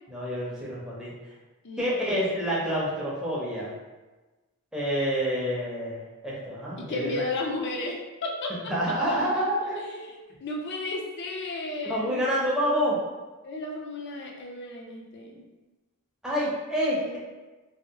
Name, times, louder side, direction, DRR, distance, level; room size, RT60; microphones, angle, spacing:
voice 1, 0.1-1.1 1.8-3.7 4.7-7.1 8.7-9.8 11.8-13.0 16.2-17.2, equal, 5° right, -7 dB, 0.6 m, -28 dB
voice 2, 1.6-2.5 6.8-8.5 9.8-12.2 13.4-15.4 16.9-17.2, left 2 dB, 55° left, 0 dB, 0.5 m, -34 dB
2.7 x 2.7 x 2.8 m, 1.2 s
head